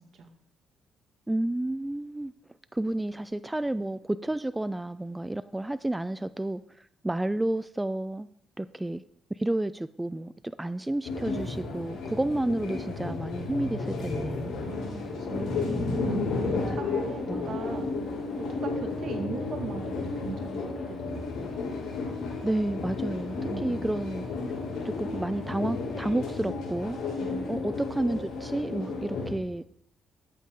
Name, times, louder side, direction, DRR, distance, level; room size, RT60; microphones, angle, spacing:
voice 1, 1.3-2.3 2.7-8.3 8.6-9.0 9.3-14.5 15.3-16.4 17.3-17.6 22.4-24.3 24.8-27.0 27.5-29.6, right 1 dB, 10° right, 0.3 m, -31 dB
sound 1, 11.0-29.3, left 3 dB, 80° left, 5.1 m, -33 dB
voice 2, 14.6-15.7 16.4-17.9 18.3-21.5 23.4-23.9 27.2-27.6, right 4 dB, 65° right, 2.1 m, -40 dB
13.5 x 8.3 x 3.8 m
cardioid pair, 90°, 0 cm